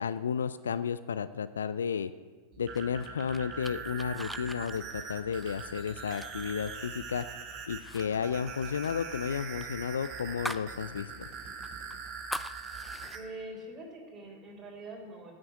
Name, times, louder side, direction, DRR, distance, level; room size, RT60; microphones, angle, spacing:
voice 1, 0.0-2.1 2.6-7.3 7.7-11.3, left 7 dB, 70° left, 14 dB, 0.4 m, -33 dB
sound 1, 2.5-13.2, right 5 dB, 35° right, 3.6 m, -42 dB
sound 2, 2.7-7.3 7.7-8.0 8.3-10.7 11.1-11.2 11.6-13.2, left 1 dB, ahead, 0.4 m, -43 dB
voice 2, 13.1-15.3, right 2 dB, 15° right, -2 dB, 3.7 m, -44 dB
9.8 x 7.8 x 9.4 m, 1.5 s
figure-of-eight pair, 90°, 0 cm